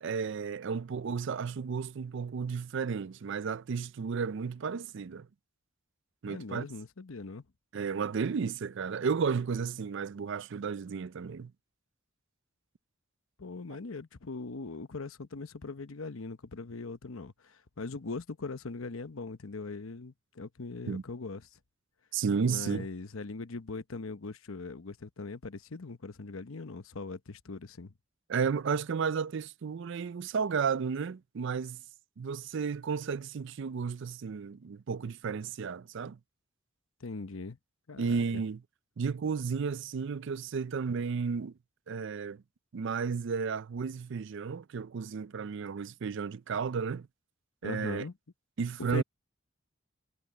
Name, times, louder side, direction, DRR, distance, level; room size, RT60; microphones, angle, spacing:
voice 1, 0.0-5.3 6.2-6.7 7.7-11.5 20.9-21.0 22.1-22.9 28.3-31.8 32.2-36.2 38.0-38.6 39.0-41.5 41.9-42.4 42.7-47.1 47.6-48.1 48.6-49.0, right 5 dB, 60° right, 0.4 m, -33 dB
voice 2, 6.3-7.4 13.4-21.5 22.5-27.9 37.0-37.6 37.9-38.4 47.6-48.1 48.9-49.0, left 3 dB, 80° left, 0.9 m, -40 dB
head